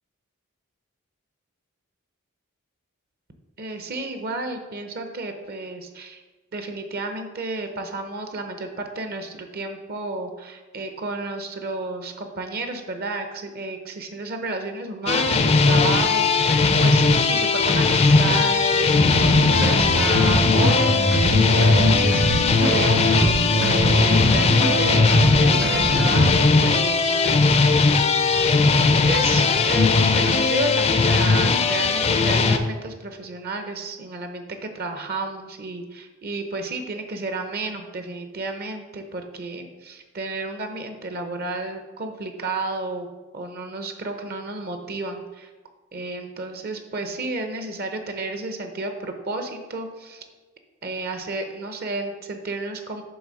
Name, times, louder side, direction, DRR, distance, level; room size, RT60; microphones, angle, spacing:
voice 1, 3.6-6.2 6.5-21.0 21.4-23.3 23.8-27.7 29.0-43.1 43.3-45.5 45.9-50.3 50.8-53.0, right 2 dB, 45° right, 6 dB, 0.7 m, -32 dB
sound 1, 15.1-32.6, left 4 dB, 30° left, 0.4 m, -19 dB
sound 2, 18.9-26.3, right 1 dB, 70° right, 2.3 m, -23 dB
7.9 x 3.4 x 6.2 m, 1.2 s
head